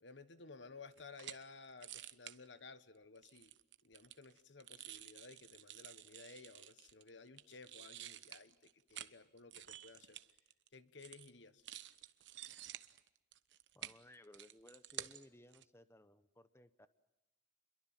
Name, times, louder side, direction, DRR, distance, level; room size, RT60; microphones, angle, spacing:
voice 1, 0.0-3.6 3.8-10.2 10.7-11.6, left 4 dB, 75° left, 13 dB, 1.4 m, -56 dB
sound 1, 1.0-1.4 1.8-2.4 3.2-7.1 7.4-9.1 9.4-10.7 11.0-11.3 11.6-15.3 15.5-15.6, right 12 dB, 75° right, 1.1 m, -51 dB
voice 2, 13.7-16.9, left 1 dB, 15° left, 12 dB, 0.9 m, -61 dB
29.0 x 23.0 x 7.6 m, 0.95 s
head